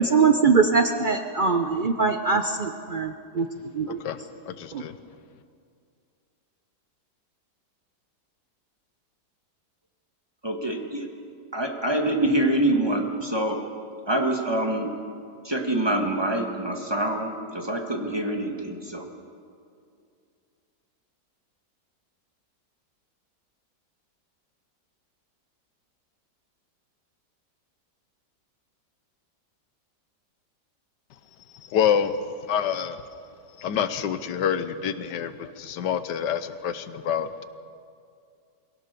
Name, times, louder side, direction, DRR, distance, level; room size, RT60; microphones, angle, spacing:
voice 1, 0.0-3.5 3.7-4.0 4.7-4.8, right 5 dB, 90° right, 7 dB, 0.4 m, -22 dB
voice 2, 4.0-4.9 31.7-32.1 32.5-33.0 33.6-37.4, left 8 dB, 75° left, 12 dB, 1.5 m, -27 dB
voice 3, 10.4-11.1 11.5-13.6 14.1-14.9 15.4-19.1, right 1 dB, 15° right, 2 dB, 1.6 m, -25 dB
23.0 x 17.0 x 6.8 m, 2.4 s
omnidirectional pair, 1.9 m